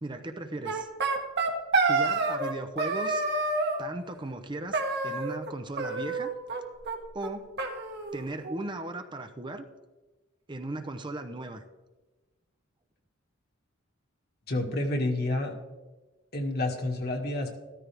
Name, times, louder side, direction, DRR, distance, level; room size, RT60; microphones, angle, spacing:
voice 1, 0.0-0.9 1.7-3.3 3.8-6.3 7.1-7.5 8.1-9.7 10.5-11.6, right 2 dB, 25° right, 7 dB, 0.7 m, -37 dB
sound 1, 0.6-2.5 2.8-3.8 4.7-5.5 5.8-6.6 6.9-7.0 7.2-7.3 7.6-8.6, right 3 dB, 55° right, 1.7 m, -28 dB
voice 2, 14.5-15.5 16.3-17.6, left 2 dB, 50° left, 1 dB, 2.0 m, -29 dB
14.0 x 13.5 x 3.4 m, 1.2 s
head